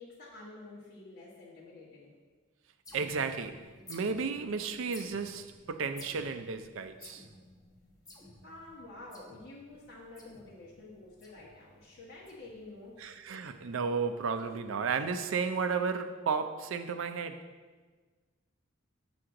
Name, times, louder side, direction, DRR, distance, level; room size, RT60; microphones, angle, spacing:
voice 1, 0.0-2.1 8.4-13.1, left 2 dB, 50° left, 1.4 m, -49 dB
sound 1, 2.9-15.6, left 1 dB, 15° left, 0.9 m, -55 dB
voice 2, 2.9-7.2 13.0-17.5, right 5 dB, 65° right, 0.5 m, -33 dB
7.8 x 6.1 x 3.8 m
head